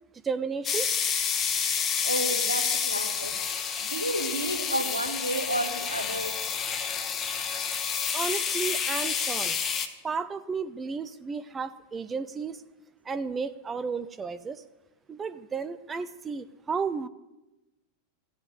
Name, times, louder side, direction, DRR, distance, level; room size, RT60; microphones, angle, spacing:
voice 1, 0.2-0.9 8.1-9.6 10.0-12.6 13.0-14.6 15.1-17.1, right 5 dB, 20° right, 12 dB, 0.5 m, -33 dB
sound 1, 0.7-9.9, left 7 dB, 25° left, 1.1 m, -29 dB
voice 2, 2.0-3.4 3.8-6.4, right 1 dB, 90° right, 6 dB, 1.4 m, -31 dB
14.5 x 8.0 x 8.3 m, 1.0 s
figure-of-eight pair, 90°, 0 cm